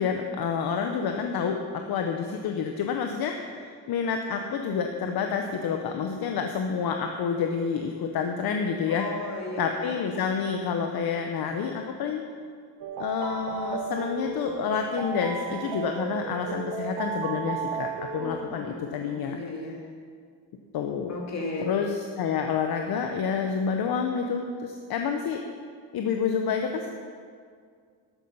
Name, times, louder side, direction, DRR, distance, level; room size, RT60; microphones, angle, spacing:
voice 1, 0.0-9.1 9.6-12.2 13.0-19.4 20.7-21.2 21.6-25.4 25.9-26.9, left 6 dB, 60° left, 4 dB, 0.8 m, -28 dB
voice 2, 8.9-9.9 18.1-19.8 21.1-21.7, left 2 dB, 40° left, -1 dB, 2.2 m, -35 dB
sound 1, 12.8-18.4, right 4 dB, 85° right, 1.0 m, -34 dB
13.0 x 8.6 x 5.5 m, 2.1 s
cardioid pair, 175°, 41 cm